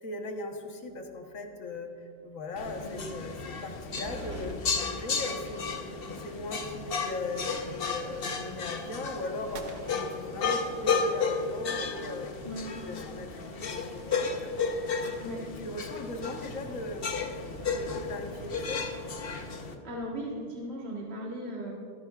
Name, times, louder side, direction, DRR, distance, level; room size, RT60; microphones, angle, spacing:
voice 1, 0.0-1.9 2.2-5.8 6.2-15.1 15.4-17.1 17.6-18.8, left 2 dB, 70° left, 3 dB, 1.5 m, -39 dB
sound 1, 0.9-1.4 1.7-1.8 4.0-4.6, equal, 20° right, 0.9 m, -41 dB
sound 2, 2.6-19.7, left 4 dB, 45° left, 1.0 m, -33 dB
sound 3, 4.0-5.4 9.5-11.1, right 4 dB, 80° right, 1.4 m, -50 dB
voice 2, 19.8-21.7, equal, 50° right, -4 dB, 1.7 m, -37 dB
24.0 x 10.5 x 2.4 m, 2.3 s
omnidirectional pair, 1.5 m